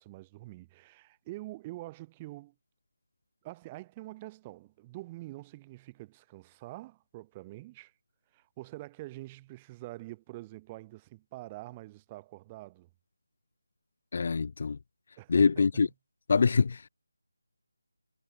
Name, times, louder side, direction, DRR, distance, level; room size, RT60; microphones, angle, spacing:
voice 1, 0.0-2.5 3.4-7.9 8.3-12.9 15.2-15.5, right 18 dB, 15° right, 1.5 m, -45 dB
voice 2, 14.1-14.8 15.3-15.9 16.3-16.9, left 5 dB, 45° left, 0.4 m, -24 dB
figure-of-eight pair, 160°, 0 cm